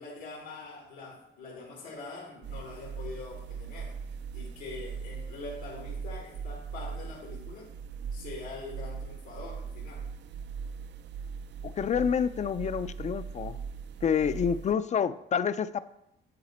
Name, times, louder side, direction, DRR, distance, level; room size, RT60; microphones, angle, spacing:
voice 1, 0.0-4.0 4.3-7.7 8.1-10.1, left 3 dB, 90° left, -3 dB, 1.6 m, -43 dB
sound 1, 2.4-14.7, right 6 dB, 60° right, 0.4 m, -40 dB
voice 2, 11.6-13.6 14.0-15.8, left 7 dB, 35° left, 14 dB, 0.4 m, -28 dB
9.4 x 4.1 x 4.2 m, 0.82 s
cardioid pair, 90°, 20 cm